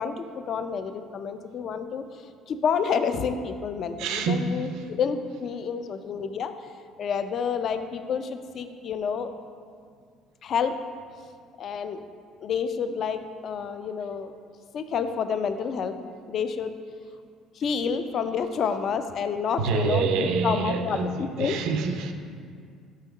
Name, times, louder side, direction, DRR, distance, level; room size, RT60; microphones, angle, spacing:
voice 1, 0.0-2.0 2.5-6.5 7.0-9.3 10.4-10.7 11.6-12.0 12.4-14.3 14.7-16.0 16.3-16.7 17.6-21.6, left 6 dB, 40° left, 9 dB, 0.4 m, -29 dB
voice 2, 4.0-4.6 19.6-22.1, right 5 dB, 65° right, 6 dB, 0.6 m, -26 dB
5.6 x 5.3 x 6.2 m, 2.2 s
cardioid pair, 165°, 0 cm